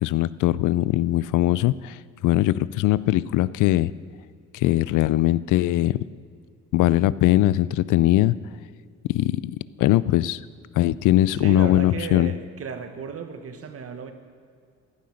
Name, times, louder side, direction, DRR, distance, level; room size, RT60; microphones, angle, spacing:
voice 1, 0.0-3.9 4.5-6.0 6.7-8.4 9.1-10.4 10.8-12.3, left 15 dB, 90° left, 18 dB, 0.5 m, -21 dB
voice 2, 11.3-14.1, right 6 dB, 50° right, 8 dB, 1.5 m, -34 dB
15.0 x 10.5 x 6.5 m, 2.3 s
cardioid pair, 90°, 30 cm